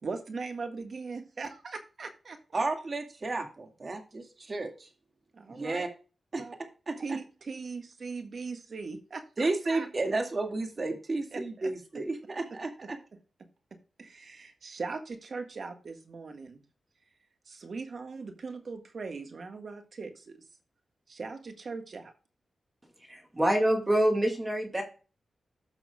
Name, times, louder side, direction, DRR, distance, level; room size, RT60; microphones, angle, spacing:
voice 1, 0.0-2.6 5.3-5.8 6.4-6.5 7.0-9.9 11.3-11.7 13.7-16.6 17.5-20.4 21.1-22.1, right 4 dB, 60° right, 6 dB, 1.7 m, -40 dB
voice 2, 2.5-4.9 5.5-5.9 6.3-6.4 6.9-7.2 9.4-13.0, right 3 dB, 40° right, 4 dB, 2.1 m, -32 dB
voice 3, 23.1-24.8, right 1 dB, 20° right, 3 dB, 2.3 m, -26 dB
15.0 x 6.0 x 2.4 m, 0.34 s
cardioid pair, 75°, 0 cm